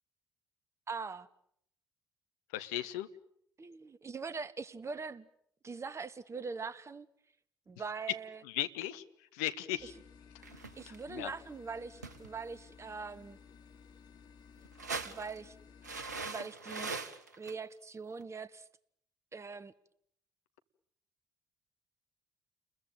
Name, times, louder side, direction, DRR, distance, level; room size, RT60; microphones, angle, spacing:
voice 1, 0.9-1.3 3.6-5.3 5.6-7.1 7.7-8.4 10.8-13.4 15.0-15.5 16.2-17.0 17.4-18.7 19.3-19.7, right 4 dB, 30° right, 1.4 m, -42 dB
voice 2, 2.5-3.1 8.4-9.0 9.3-9.9 10.9-11.3, left 13 dB, 75° left, 1.3 m, -37 dB
sound 1, 9.8-16.3, left 6 dB, 55° left, 3.2 m, -57 dB
sound 2, 10.4-11.0 12.0-12.4 14.6-15.4 15.8-17.5 18.2-18.3, right 4 dB, 90° right, 1.1 m, -41 dB
30.0 x 22.0 x 9.1 m
figure-of-eight pair, 45°, 9 cm